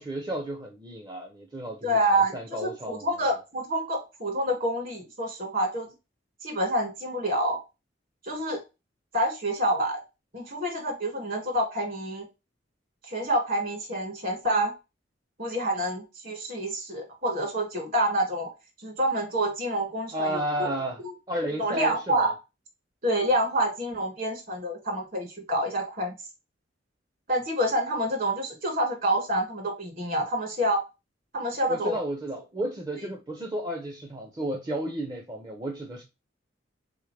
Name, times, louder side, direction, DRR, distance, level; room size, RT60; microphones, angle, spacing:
voice 1, 0.0-2.0 2.3-3.1 20.1-21.0 21.3-22.3 31.7-36.0, right 1 dB, 20° right, 0.6 m, -32 dB
voice 2, 1.8-5.9 6.4-7.6 8.2-8.6 9.1-10.0 10.3-12.3 13.1-14.7 15.4-18.5 18.8-20.7 21.0-21.1 21.6-22.3 23.0-26.1 27.3-30.8 31.3-32.0, right 1 dB, 50° right, 2.1 m, -27 dB
4.0 x 3.5 x 3.3 m
head